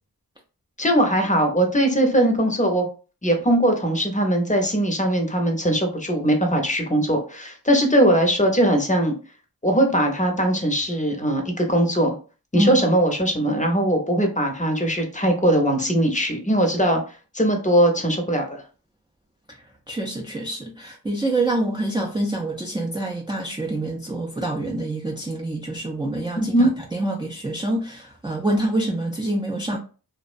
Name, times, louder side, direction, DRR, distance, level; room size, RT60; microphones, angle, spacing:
voice 1, 0.8-2.8 3.2-9.1 9.6-12.2 12.5-17.0 17.3-18.6 26.4-26.7, right 1 dB, 20° left, 0.7 m, -20 dB
voice 2, 19.9-29.8, right 1 dB, 10° right, 0.4 m, -26 dB
2.5 x 2.0 x 2.4 m
cardioid pair, 40°, 39 cm